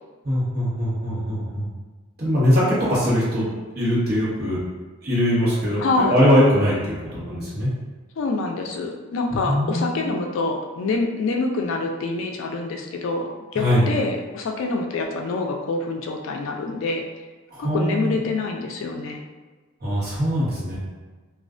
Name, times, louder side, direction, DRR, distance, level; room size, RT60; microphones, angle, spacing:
voice 1, 0.2-1.7 2.2-3.4 3.7-4.6 5.0-7.7 9.4-9.9 13.5-13.9 17.5-18.2 19.8-20.8, equal, 50° right, -8 dB, 1.0 m, -21 dB
voice 2, 5.8-6.1 8.2-17.0 17.6-19.2, left 3 dB, 65° left, 2 dB, 0.3 m, -26 dB
2.4 x 2.1 x 2.4 m, 1.3 s
head